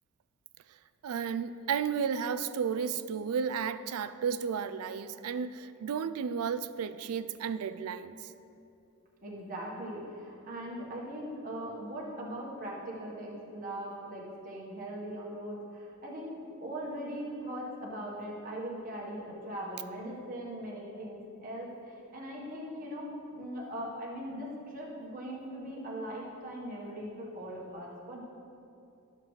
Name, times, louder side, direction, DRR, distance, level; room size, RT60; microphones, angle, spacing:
voice 1, 1.0-8.3, right 6 dB, 80° right, 0.4 m, -33 dB
voice 2, 9.2-16.3 16.6-28.2, right 1 dB, 40° right, 1.3 m, -40 dB
13.0 x 6.7 x 3.2 m
head